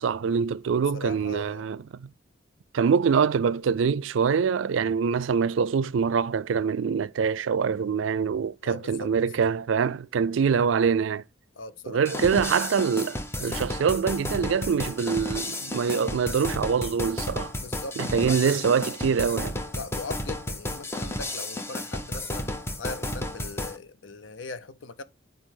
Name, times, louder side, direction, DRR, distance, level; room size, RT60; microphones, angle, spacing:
voice 1, 0.0-2.1 2.7-11.2 11.9-17.5 18.0-19.6, right 6 dB, 85° right, 0.4 m, -24 dB
voice 2, 0.9-1.7 8.6-9.1 11.6-12.5 17.5-18.6 19.7-25.0, left 3 dB, 85° left, 0.8 m, -39 dB
sound 1, 12.1-23.8, left 1 dB, 15° left, 0.8 m, -33 dB
9.1 x 4.3 x 3.8 m
head